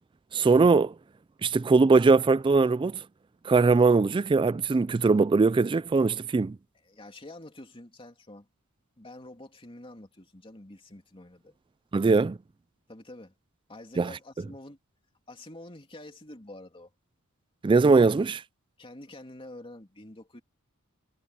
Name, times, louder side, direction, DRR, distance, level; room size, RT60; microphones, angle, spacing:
voice 1, 0.3-0.9 1.4-3.0 3.4-6.6 11.9-12.4 14.0-14.1 17.6-18.4, right 4 dB, 20° right, 0.3 m, -21 dB
voice 2, 6.8-8.5 9.0-11.6 12.9-13.3 13.7-14.8 15.3-16.9 18.8-20.4, left 1 dB, 25° left, 2.9 m, -47 dB
head